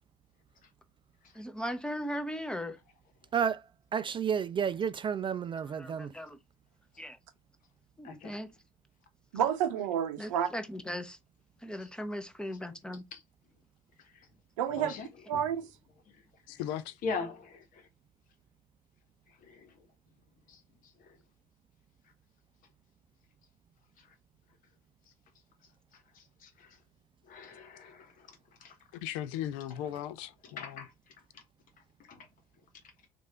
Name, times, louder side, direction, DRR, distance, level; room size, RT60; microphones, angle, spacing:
voice 1, 1.3-2.8 5.8-6.4 7.0-7.1 8.0-8.5 10.2-11.2 11.6-13.0, equal, 5° left, 0.9 m, -38 dB
voice 2, 3.3-6.1, right 7 dB, 30° right, 0.3 m, -31 dB
voice 3, 8.0-8.4 13.1-13.2 14.0-14.3 14.8-15.1 16.1-16.2 16.5-16.6 17.0-17.9 19.4-19.7 20.5-20.6 21.0-21.2 24.0-24.1 25.9-26.8 27.3-28.7 30.4-30.9 31.3-31.4 32.1-32.3, left 4 dB, 60° left, 1.1 m, -42 dB
voice 4, 9.3-10.5 14.6-15.0 15.3-15.7, right 9 dB, 85° right, 0.6 m, -30 dB
voice 5, 16.5-17.0 29.0-30.8, left 11 dB, 75° left, 0.4 m, -37 dB
3.3 x 2.5 x 4.2 m
hypercardioid pair, 60°, 16 cm